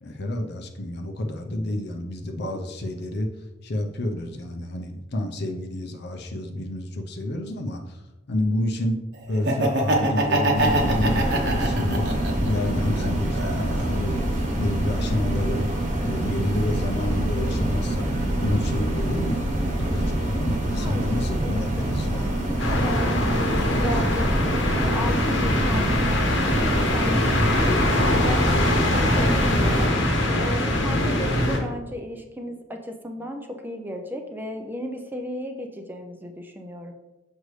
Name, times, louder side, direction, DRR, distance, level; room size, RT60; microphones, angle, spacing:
voice 1, 0.0-3.3 3.6-8.0 8.3-9.0 9.3-12.1 12.4-14.3 14.6-15.7 16.0-18.1 18.4-19.5 19.8-22.4, left 1 dB, 60° left, 3 dB, 0.7 m, -29 dB
Laughter, 9.3-12.5 12.9-14.1, right 1 dB, 65° right, 1.0 m, -24 dB
sound 1, 10.5-29.9, right 1 dB, 45° right, 1.2 m, -26 dB
voice 2, 20.8-21.1 21.4-24.4 24.7-29.9 30.4-36.9, equal, 10° right, 4 dB, 0.6 m, -35 dB
sound 2, 22.6-31.6, left 1 dB, 85° left, 1.3 m, -23 dB
6.5 x 5.3 x 3.2 m, 1.0 s
head